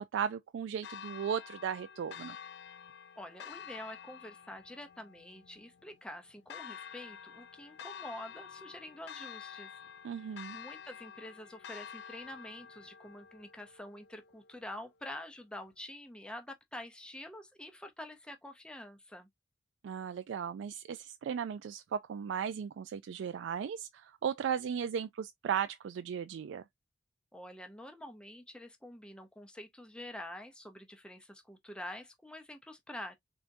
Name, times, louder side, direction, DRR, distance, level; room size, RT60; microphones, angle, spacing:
voice 1, 0.0-2.4 10.0-10.6 19.8-26.6, right 8 dB, 80° right, 0.3 m, -36 dB
Church bell, 0.8-14.8, left 8 dB, 65° left, 0.4 m, -49 dB
voice 2, 3.2-9.8 10.5-19.3 27.3-33.1, left 1 dB, 5° left, 0.6 m, -47 dB
3.9 x 3.5 x 2.6 m
head